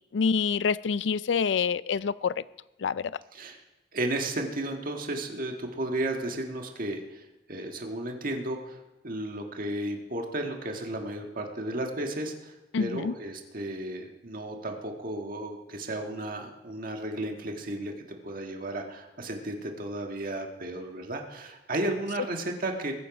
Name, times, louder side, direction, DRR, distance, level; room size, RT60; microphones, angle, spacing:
voice 1, 0.1-2.3 2.8-3.1 12.7-13.1, left 5 dB, 75° left, 18 dB, 0.4 m, -26 dB
voice 2, 3.3-3.6 3.9-22.9, right 1 dB, 50° right, 3 dB, 1.6 m, -34 dB
21.5 x 9.2 x 4.9 m, 1.0 s
head